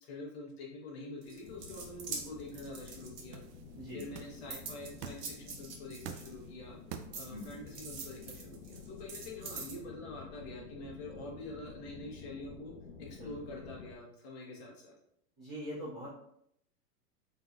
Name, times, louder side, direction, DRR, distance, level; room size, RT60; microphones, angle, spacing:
voice 1, 0.0-3.4 3.9-6.8 7.1-12.7 13.0-14.9, left 2 dB, 40° left, -1 dB, 1.0 m, -46 dB
sound 1, 1.2-3.6 4.0-6.7 7.1-9.8, right 5 dB, 70° right, 1.1 m, -45 dB
sound 2, 1.4-14.0, left 5 dB, 85° left, 0.9 m, -51 dB
sound 3, 1.6-7.8, right 8 dB, 90° right, 0.7 m, -49 dB
voice 2, 15.4-16.1, equal, ahead, -27 dB, 0.3 m, -42 dB
4.0 x 3.8 x 2.3 m, 0.72 s
supercardioid pair, 170°, 47 cm